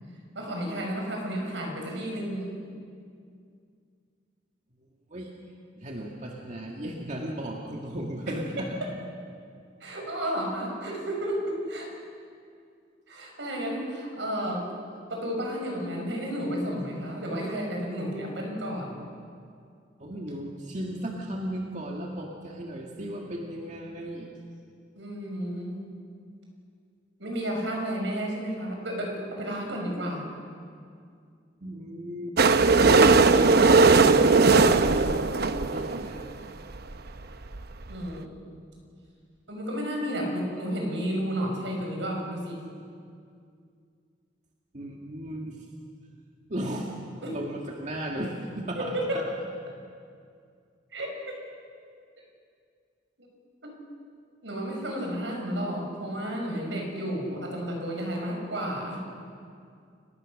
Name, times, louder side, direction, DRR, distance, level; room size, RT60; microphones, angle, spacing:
voice 1, 0.3-2.6 9.8-11.9 13.1-14.7 15.1-19.0 24.9-25.9 27.2-30.3 37.9-38.3 39.5-42.6 47.2-47.4 48.8-49.3 50.9-51.1 53.2-53.3 54.4-59.0, equal, 80° right, 0 dB, 6.3 m, -32 dB
voice 2, 5.8-8.7 20.0-24.3 31.6-32.4 33.0-36.5 44.7-45.6 46.5-46.9 47.3-49.2, right 1 dB, 40° right, -1 dB, 2.0 m, -35 dB
sound 1, 32.4-36.2 36.9-37.0 37.2-37.3 37.5-37.6 37.9-38.0, right 4 dB, 60° right, 0.8 m, -19 dB
30.0 x 19.0 x 6.6 m, 2.3 s
head